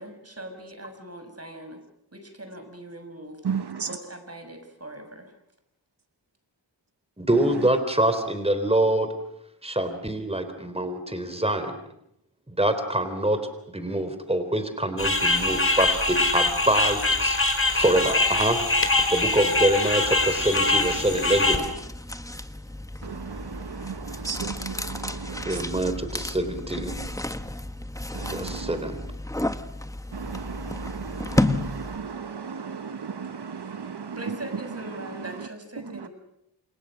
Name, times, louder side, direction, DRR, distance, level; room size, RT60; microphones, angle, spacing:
voice 1, 0.0-1.8 2.1-3.4 3.8-5.3 34.1-36.1, right 1 dB, 35° right, 6.4 m, -41 dB
voice 2, 3.4-3.9 23.0-25.6 28.1-28.8 30.1-34.3, right 6 dB, 60° right, 1.1 m, -35 dB
voice 3, 7.2-9.1 9.6-11.8 12.6-13.4 13.7-17.4 17.7-18.6 19.1-21.6 25.5-26.9 28.3-28.9, right 1 dB, 15° right, 3.8 m, -25 dB
sound 1, 15.0-21.6, left 2 dB, 30° left, 4.7 m, -23 dB
sound 2, 20.0-32.1, left 1 dB, 5° left, 1.4 m, -32 dB
28.5 x 27.5 x 6.4 m
wide cardioid pair, 70°, 44 cm